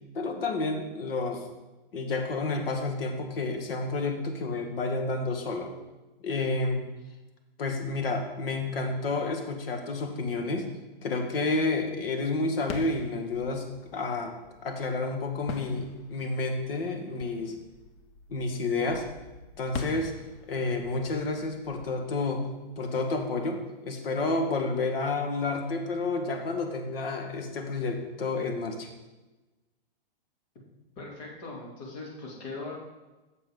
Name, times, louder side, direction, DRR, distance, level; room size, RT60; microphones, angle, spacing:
voice 1, 0.1-1.4 1.9-5.7 6.2-6.8 7.6-10.7 11.0-14.3 14.6-17.6 18.3-19.0 19.6-20.1 20.5-22.4 22.8-28.9, left 3 dB, 75° left, 4 dB, 1.5 m, -30 dB
sound 1, 12.6-23.2, left 4 dB, 30° left, 0.6 m, -44 dB
voice 2, 31.0-32.7, left 3 dB, 50° left, -2 dB, 2.8 m, -40 dB
9.1 x 6.7 x 3.7 m, 1.1 s
hypercardioid pair, 150°, 30 cm